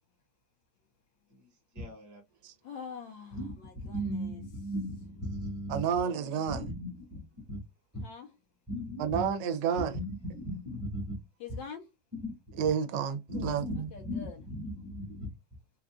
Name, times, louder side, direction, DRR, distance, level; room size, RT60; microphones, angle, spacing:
voice 1, 1.3-2.2 3.3-3.5 3.8-7.6 8.7-9.3 9.7-11.2 12.1-12.7 13.3-15.3, equal, 10° right, 0.9 m, -38 dB
voice 2, 2.6-3.4 3.9-4.1 7.9-8.3 11.4-11.8 13.9-14.4, left 6 dB, 75° left, 1.6 m, -43 dB
voice 3, 5.7-6.6 9.0-10.0 12.6-13.6, right 7 dB, 75° right, 1.2 m, -30 dB
3.8 x 2.4 x 2.3 m
omnidirectional pair, 2.0 m